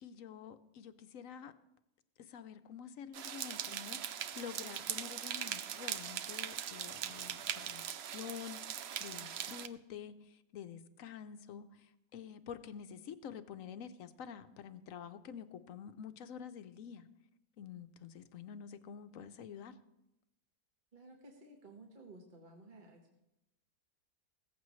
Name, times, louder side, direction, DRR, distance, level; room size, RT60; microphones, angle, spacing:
voice 1, 0.0-1.5 2.2-17.1 17.6-19.8, left 8 dB, 65° left, 11 dB, 1.0 m, -48 dB
sound 1, 3.1-9.7, right 9 dB, 70° right, 0.6 m, -41 dB
voice 2, 20.9-23.2, right 2 dB, 35° right, 1 dB, 1.4 m, -55 dB
16.0 x 14.5 x 3.2 m, 0.87 s
omnidirectional pair, 1.7 m